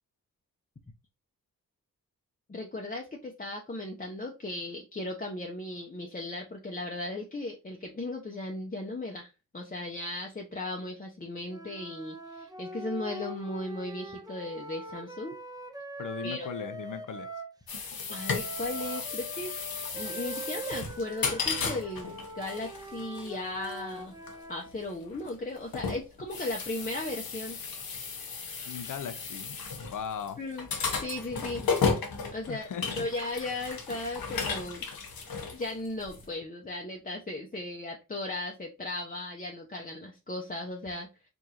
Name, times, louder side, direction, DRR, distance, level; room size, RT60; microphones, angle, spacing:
voice 1, 2.5-15.4 16.2-16.5 18.1-19.5 19.9-24.2 24.5-27.6 30.4-30.7 31.0-31.6 32.3-32.7 32.9-34.8 35.5-41.1, left 2 dB, 25° left, 0.7 m, -36 dB
sound 1, 11.5-17.5 18.1-24.8, right 2 dB, 10° right, 0.7 m, -42 dB
voice 2, 16.0-17.3 28.6-30.4 32.5-33.1, left 7 dB, 65° left, 0.6 m, -38 dB
sound 2, 17.7-36.2, left 5 dB, 85° left, 1.0 m, -34 dB
4.8 x 2.6 x 2.8 m
cardioid pair, 65°, 35 cm